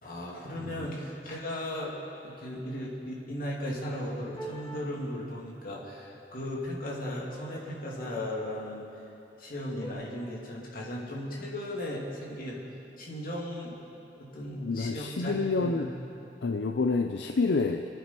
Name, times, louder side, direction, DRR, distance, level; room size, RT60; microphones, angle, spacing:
voice 1, 0.0-8.9 9.4-12.6 13.0-13.8 14.2-15.3 15.6-15.7, left 1 dB, 55° left, -4 dB, 2.7 m, -36 dB
sound 1, 4.0-4.8 7.3-7.7 8.0-8.6 9.8-9.9, right 1 dB, 25° left, 2.1 m, -44 dB
voice 2, 14.6-15.9 16.4-17.9, left 3 dB, 80° left, 5 dB, 0.6 m, -28 dB
26.0 x 9.2 x 4.5 m, 2.8 s
head